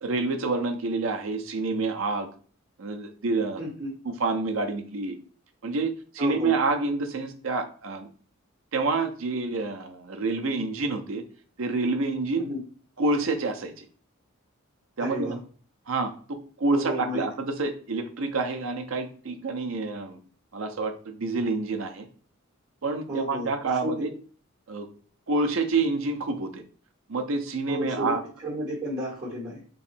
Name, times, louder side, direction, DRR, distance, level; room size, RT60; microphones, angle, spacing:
voice 1, 0.0-2.3 2.8-3.6 4.0-5.2 5.6-8.1 8.7-11.2 11.6-12.5 13.0-13.9 15.0-15.4 15.9-20.2 20.5-22.1 22.8-24.1 24.7-24.9 25.3-26.6 27.1-28.2, right 3 dB, 65° right, 5 dB, 0.6 m, -28 dB
voice 2, 3.6-3.9 6.2-6.5 12.4-12.6 15.0-15.4 16.7-17.2 23.1-23.5 23.8-24.1 27.7-28.2 28.4-29.6, equal, 25° right, -7 dB, 1.6 m, -32 dB
3.1 x 2.7 x 4.3 m, 0.42 s
head